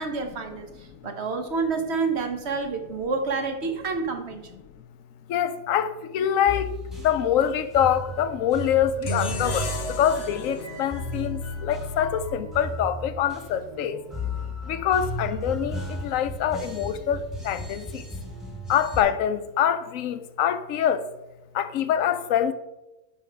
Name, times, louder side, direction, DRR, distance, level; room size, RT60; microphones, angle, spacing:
voice 1, 0.0-4.5, right 4 dB, 60° right, 1.2 m, -28 dB
voice 2, 5.3-6.7 7.0-14.0 14.7-18.1 18.7-21.1 21.5-22.5, left 9 dB, 90° left, 1.0 m, -25 dB
sound 1, 6.5-19.0, equal, ahead, 1.6 m, -35 dB
sound 2, 9.0-12.2, left 4 dB, 55° left, 1.0 m, -35 dB
10.5 x 3.6 x 4.5 m
omnidirectional pair, 1.3 m